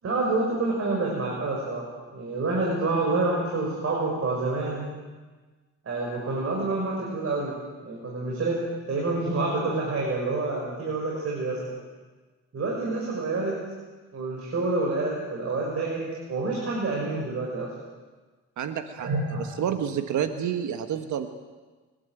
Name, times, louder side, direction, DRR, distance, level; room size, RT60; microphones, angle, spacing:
voice 1, 0.0-4.9 5.8-7.5 7.8-8.6 8.9-11.8 12.5-13.6 14.1-17.7 19.0-19.4, right 3 dB, 50° right, -3 dB, 6.2 m, -28 dB
voice 2, 18.6-19.1 19.4-21.3, right 9 dB, 75° right, 8 dB, 1.6 m, -29 dB
27.5 x 12.5 x 9.3 m, 1.3 s
cardioid pair, 90°, 30 cm